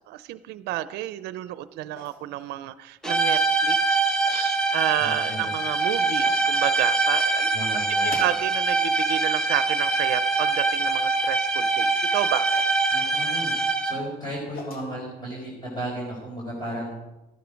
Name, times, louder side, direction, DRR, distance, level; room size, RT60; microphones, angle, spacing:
voice 1, 0.0-7.6 8.0-12.5, right 14 dB, 85° right, 15 dB, 0.5 m, -30 dB
sound 1, 1.9-2.5 3.3-3.5 4.0-4.4 5.5-5.6 6.2-6.5 8.1-8.7 9.0-9.4 10.6-10.8 12.5-12.8 14.2-14.9, left 2 dB, 65° left, 2.8 m, -42 dB
sound 2, 3.0-14.1, right 3 dB, 5° left, 1.3 m, -24 dB
voice 2, 5.0-5.5 7.5-8.1 12.9-13.5 13.8-16.9, equal, 25° left, -4 dB, 4.3 m, -34 dB
13.5 x 12.0 x 5.1 m, 1.0 s
cardioid pair, 110°, 17 cm